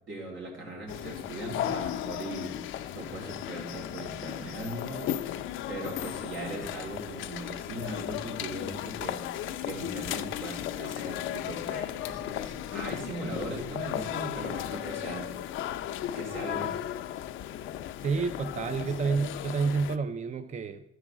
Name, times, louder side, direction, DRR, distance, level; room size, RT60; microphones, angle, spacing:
voice 1, 0.1-15.6 16.1-16.8 18.6-18.9, right 2 dB, 80° right, -1 dB, 3.2 m, -40 dB
sound 1, 0.9-20.0, left 11 dB, 80° left, 0.5 m, -35 dB
voice 2, 18.0-20.8, right 5 dB, 35° right, 10 dB, 0.5 m, -29 dB
12.5 x 4.8 x 6.1 m, 0.76 s
cardioid pair, 90°, 20 cm